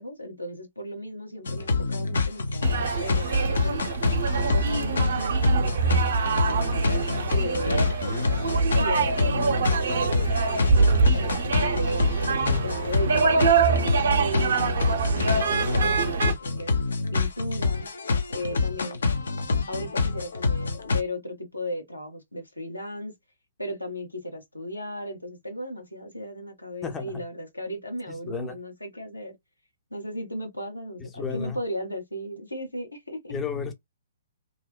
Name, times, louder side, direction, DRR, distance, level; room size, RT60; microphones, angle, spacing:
voice 1, 0.0-3.8 4.3-6.3 7.3-7.9 8.7-10.1 10.5-12.0 12.5-16.7 17.1-17.9 18.3-19.0 19.7-23.1 23.6-29.3 29.9-33.3, equal, 85° left, 1.0 m, -36 dB
sound 1, 1.5-21.0, left 4 dB, 65° left, 0.5 m, -27 dB
sound 2, 2.6-16.3, right 4 dB, 55° right, 0.6 m, -24 dB
voice 2, 12.3-12.6 26.8-27.1 28.3-28.6 31.2-31.6 33.3-33.7, left 5 dB, 15° left, 0.5 m, -32 dB
2.7 x 2.1 x 2.2 m
figure-of-eight pair, 120°, 0 cm